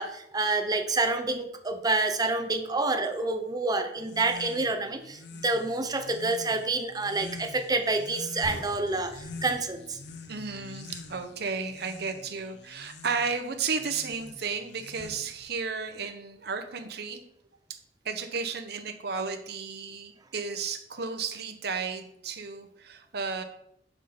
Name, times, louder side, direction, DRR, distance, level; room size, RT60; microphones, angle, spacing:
voice 1, 0.0-10.0, right 3 dB, 20° right, 5 dB, 0.7 m, -28 dB
sound 1, 4.0-15.5, left 3 dB, 65° left, 0.6 m, -46 dB
sound 2, 8.4-11.8, right 1 dB, 85° right, 1.3 m, -45 dB
voice 2, 10.3-17.2 17.7-17.8 18.0-23.4, right 5 dB, 65° right, 7 dB, 0.8 m, -33 dB
6.5 x 5.0 x 4.1 m, 0.74 s
head